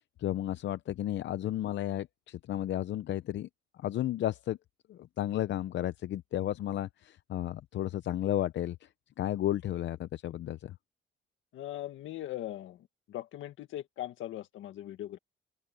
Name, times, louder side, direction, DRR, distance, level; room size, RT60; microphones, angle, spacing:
voice 1, 0.2-3.5 3.8-4.6 4.9-8.9 9.2-10.7, left 12 dB, 65° left, 0.7 m, -33 dB
voice 2, 11.5-15.2, left 13 dB, 85° left, 1.8 m, -40 dB
open air
cardioid pair, 100°, 20 cm